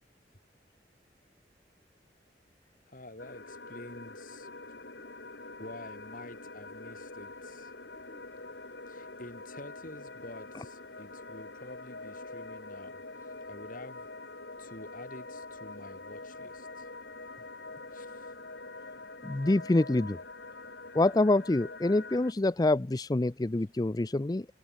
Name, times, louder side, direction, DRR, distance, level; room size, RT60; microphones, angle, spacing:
voice 1, 2.9-4.5 5.6-7.7 8.9-14.1 14.6-16.9 17.9-18.3, left 1 dB, 50° left, 5.4 m, -49 dB
sound 1, 3.2-22.3, left 3 dB, 70° left, 3.5 m, -45 dB
voice 2, 19.2-20.2 20.9-24.5, left 2 dB, 20° left, 0.5 m, -26 dB
head